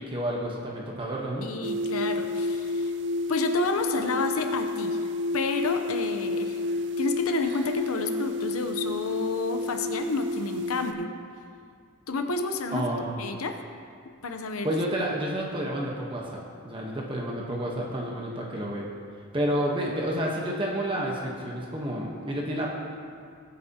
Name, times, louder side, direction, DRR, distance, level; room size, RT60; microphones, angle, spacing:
voice 1, 0.0-1.5 12.7-13.2 14.6-18.9 19.3-22.7, right 1 dB, 25° right, -2 dB, 1.1 m, -30 dB
voice 2, 1.4-2.9 3.3-5.0 5.3-6.6 7.0-11.1 12.1-12.8 13.2-13.6 14.2-14.7, left 3 dB, 85° left, 5 dB, 0.8 m, -30 dB
sound 1, 1.6-10.9, left 2 dB, 55° right, 0.5 m, -30 dB
19.0 x 8.4 x 2.9 m, 2.2 s
head